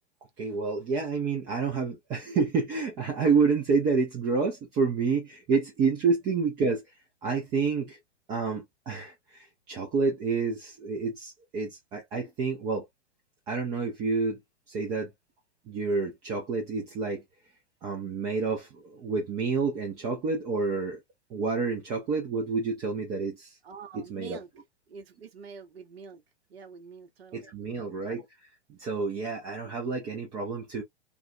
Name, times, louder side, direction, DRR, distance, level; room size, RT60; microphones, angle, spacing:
voice 1, 0.4-8.0 8.3-12.9 13.5-14.4 14.7-15.1 15.7-17.2 17.8-21.0 21.3-23.6 23.9-24.4 27.3-30.8, right 4 dB, 10° right, 0.3 m, -29 dB
voice 2, 23.6-24.5 24.9-26.2 26.5-27.6, right 6 dB, 65° right, 0.8 m, -46 dB
2.4 x 2.1 x 2.6 m
figure-of-eight pair, 105°, 33 cm